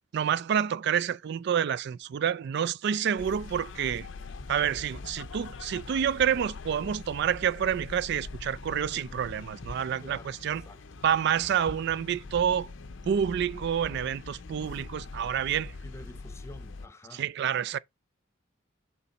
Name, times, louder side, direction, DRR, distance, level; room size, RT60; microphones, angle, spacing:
voice 1, 0.1-4.1 4.5-10.6 11.0-12.7 13.1-15.7 17.1-17.8, right 8 dB, 55° right, 0.3 m, -28 dB
sound 1, 3.2-16.9, left 3 dB, 70° left, 0.6 m, -43 dB
voice 2, 10.0-10.4 10.6-11.0 15.8-17.3, left 1 dB, 15° left, 0.8 m, -48 dB
7.1 x 3.3 x 4.0 m
head